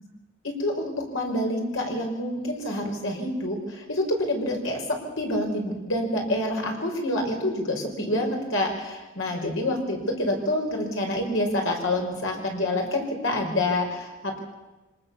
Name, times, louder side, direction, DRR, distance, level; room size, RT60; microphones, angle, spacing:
voice 1, 0.4-14.4, left 1 dB, 65° left, 2 dB, 5.5 m, -27 dB
25.5 x 20.0 x 7.1 m, 1.1 s
head